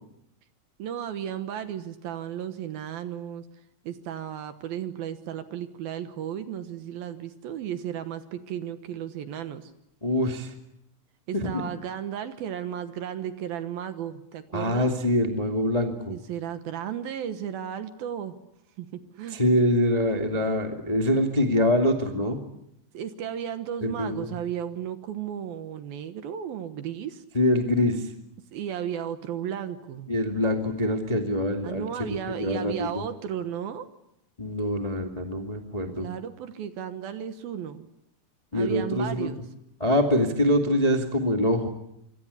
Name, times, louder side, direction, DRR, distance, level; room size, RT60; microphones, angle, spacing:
voice 1, 0.8-3.5 3.8-9.7 11.3-14.9 16.1-18.4 18.8-18.9 19.2-19.4 22.9-27.2 28.5-30.1 31.6-33.9 36.0-37.9 38.5-39.4, right 9 dB, 65° right, 10 dB, 2.8 m, -34 dB
voice 2, 10.0-10.5 11.3-11.6 14.5-16.1 19.3-22.4 23.8-24.3 27.3-28.1 30.1-33.0 34.4-36.1 38.5-39.3 39.8-41.7, left 1 dB, 15° left, 3 dB, 1.3 m, -24 dB
25.5 x 25.0 x 8.4 m, 0.80 s
omnidirectional pair, 5.0 m